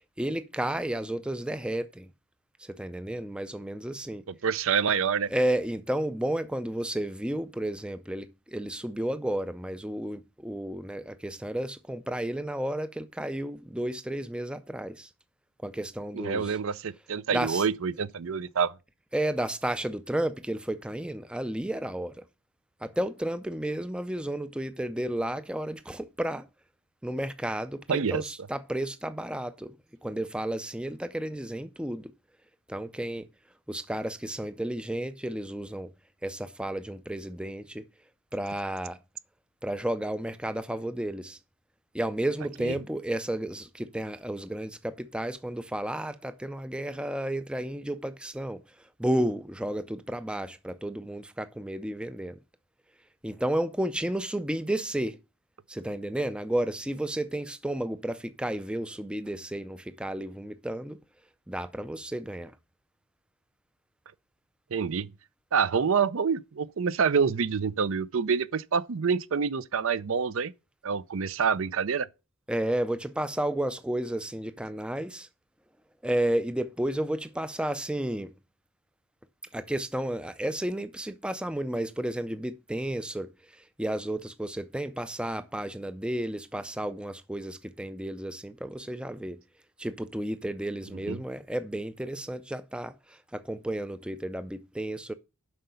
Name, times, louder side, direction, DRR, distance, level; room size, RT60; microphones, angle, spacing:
voice 1, 0.0-2.1 2.6-4.2 5.3-15.1 15.6-16.6 17.3-17.7 19.1-22.2 22.8-26.5 27.0-29.8 30.0-32.1 32.7-33.3 33.7-35.9 36.2-37.8 38.3-39.0 39.6-41.4 41.9-48.6 49.0-52.4 53.2-55.2 55.7-61.0 61.5-62.6 72.5-75.3 76.0-78.3 79.5-89.4 89.8-95.1, right 1 dB, 5° right, 0.4 m, -32 dB
voice 2, 4.4-5.3 16.1-18.7 27.9-28.2 42.7-42.8 64.7-65.1 65.5-70.5 70.8-72.1 91.1-91.2, right 6 dB, 65° right, 0.5 m, -27 dB
7.7 x 5.6 x 6.9 m
head